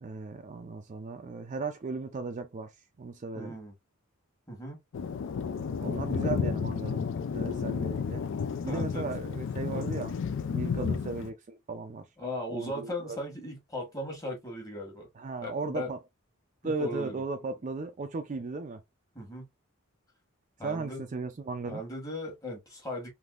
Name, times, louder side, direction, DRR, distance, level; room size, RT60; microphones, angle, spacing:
voice 1, 0.0-2.7 3.0-3.6 5.5-7.1 7.3-8.2 8.6-10.2 10.5-12.1 12.5-13.2 15.2-16.0 16.6-18.8 20.6-21.8, right 3 dB, 35° right, 0.4 m, -36 dB
voice 2, 3.3-3.7 4.5-4.8 8.7-9.1 9.7-9.9 10.8-10.9 12.2-15.1 15.4-15.9 16.6-17.2 19.1-19.5 20.6-21.0 21.7-23.1, left 1 dB, 15° left, 1.3 m, -38 dB
Thunder, 4.9-11.3, left 6 dB, 60° left, 0.3 m, -32 dB
3.5 x 2.6 x 2.4 m
head